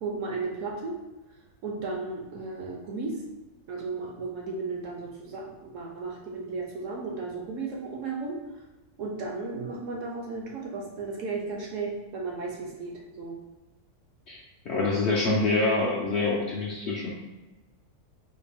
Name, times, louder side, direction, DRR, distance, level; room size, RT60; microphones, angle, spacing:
voice 1, 0.0-1.0 1.6-3.2 3.7-8.4 9.0-13.4, right 3 dB, 65° right, -1 dB, 0.9 m, -34 dB
voice 2, 14.7-17.1, left 3 dB, 65° left, -4 dB, 0.7 m, -26 dB
4.0 x 2.2 x 3.5 m, 1.1 s
omnidirectional pair, 1.7 m